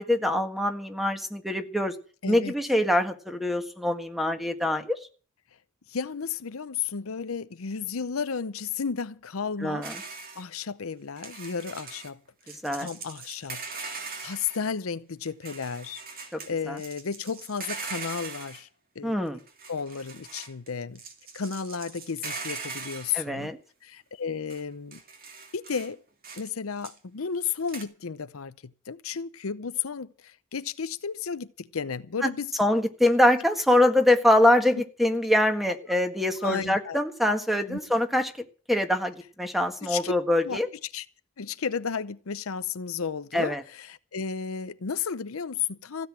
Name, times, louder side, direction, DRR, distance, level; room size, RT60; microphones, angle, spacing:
voice 1, 0.0-1.9 2.2-5.0 9.6-10.0 12.6-12.9 16.3-16.4 16.7-16.8 19.0-19.4 23.1-23.6 32.2-32.3 32.6-38.3 38.7-40.7 43.3-43.6, left 1 dB, ahead, 1.7 m, -24 dB
voice 2, 2.2-2.5 5.9-9.9 10.4-12.2 12.5-13.6 13.9-18.7 19.0-19.1 19.7-21.0 21.3-23.5 23.8-25.0 25.5-26.0 26.4-32.5 36.4-37.0 37.6-37.8 39.8-40.1 40.4-40.6 40.9-41.1 41.4-46.1, left 6 dB, 85° left, 0.7 m, -33 dB
sound 1, 9.8-10.4 11.2-12.1 12.5-14.6 15.3-16.5 16.8-18.6 19.4-20.7 20.9-23.3 24.5-24.6 24.9-25.9 26.2-26.5 26.8-27.0 27.7-27.8, right 4 dB, 45° right, 2.6 m, -40 dB
16.0 x 8.0 x 8.9 m
head